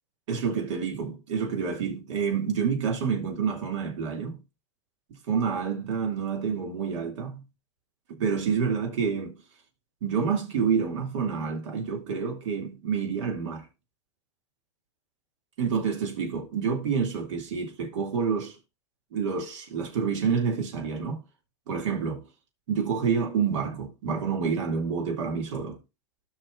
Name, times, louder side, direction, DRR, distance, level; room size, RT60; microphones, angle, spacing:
voice 1, 0.3-4.4 5.3-7.4 8.1-9.4 10.0-13.7 15.6-18.6 19.1-21.2 21.7-22.2 22.7-25.8, right 6 dB, 75° right, 2.6 m, -28 dB
17.5 x 5.9 x 2.5 m
supercardioid pair, 130°, 16 cm